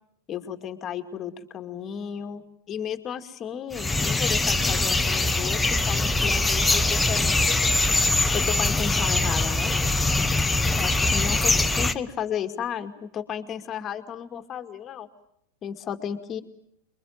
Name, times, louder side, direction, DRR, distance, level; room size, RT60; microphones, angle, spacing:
voice 1, 0.3-7.6 8.3-9.8 10.7-15.1 15.6-16.4, left 8 dB, 30° left, 7 dB, 2.4 m, -34 dB
sound 1, 3.7-11.9, left 2 dB, 10° left, 1.3 m, -22 dB
28.5 x 22.5 x 9.1 m, 0.75 s
figure-of-eight pair, 90°, 0 cm